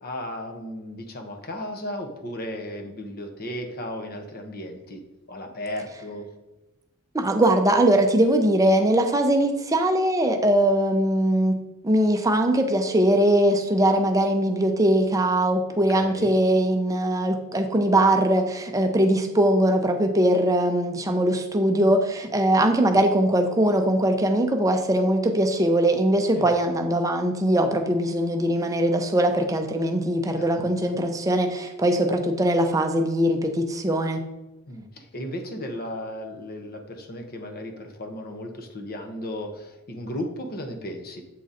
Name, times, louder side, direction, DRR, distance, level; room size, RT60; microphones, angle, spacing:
voice 1, 0.0-5.0 5.3-6.3 15.9-16.3 22.8-23.0 26.3-26.5 30.3-30.6 34.7-41.2, left 1 dB, 45° left, 4 dB, 0.8 m, -35 dB
voice 2, 7.1-11.6 11.8-34.2, right 1 dB, 15° right, 4 dB, 0.6 m, -21 dB
7.5 x 3.8 x 4.1 m, 1.0 s
head